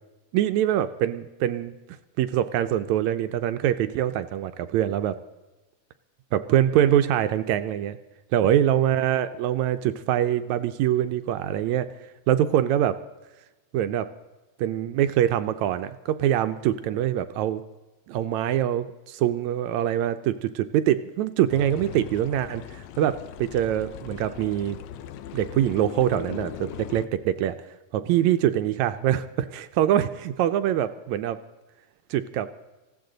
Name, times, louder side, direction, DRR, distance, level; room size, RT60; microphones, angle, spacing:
voice 1, 0.3-1.8 2.2-5.2 6.3-8.0 8.3-11.9 12.3-13.0 13.7-14.1 14.6-17.6 18.1-24.8 25.3-27.6 27.9-31.4 32.1-32.5, right 11 dB, 75° right, 10 dB, 1.8 m, -24 dB
sound 1, 21.5-27.1, left 10 dB, 75° left, 1.6 m, -39 dB
20.0 x 15.5 x 3.9 m, 1.1 s
omnidirectional pair, 3.6 m